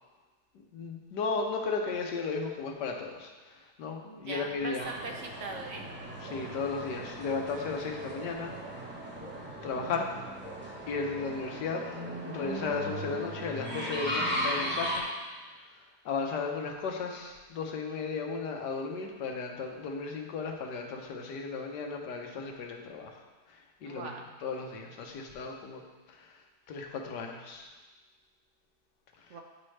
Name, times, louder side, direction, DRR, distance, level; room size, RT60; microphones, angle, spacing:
voice 1, 0.7-4.9 6.2-8.5 9.6-10.1 10.9-11.8 12.2-15.1 16.0-23.1 23.5-24.1 24.4-25.8 26.1-26.3 26.7-27.7, left 4 dB, 90° left, 2 dB, 1.5 m, -35 dB
voice 2, 4.0-5.9 23.8-24.3 29.3-29.4, right 3 dB, 65° right, 2 dB, 0.8 m, -40 dB
sound 1, 4.8-15.0, equal, 10° right, 0.9 m, -37 dB
8.8 x 5.3 x 3.2 m, 1.3 s
omnidirectional pair, 1.8 m